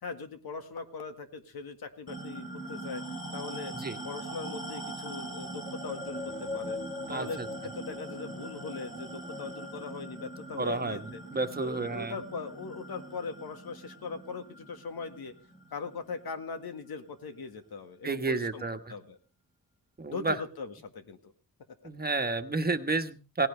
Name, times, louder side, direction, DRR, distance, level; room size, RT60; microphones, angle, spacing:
voice 1, 0.0-3.0 3.3-3.7 4.0-6.8 7.1-11.2 11.6-15.3 15.7-18.6 18.9-19.2 20.1-21.2, left 4 dB, 85° left, 7 dB, 2.0 m, -40 dB
sound 1, 2.1-16.9, right 1 dB, 20° left, 4.7 m, -41 dB
voice 2, 7.1-7.5 10.5-12.1 18.0-18.9 20.0-20.4 21.8-23.5, right 3 dB, 25° right, 7 dB, 1.3 m, -31 dB
18.0 x 16.5 x 3.4 m, 0.34 s
wide cardioid pair, 120°, 36 cm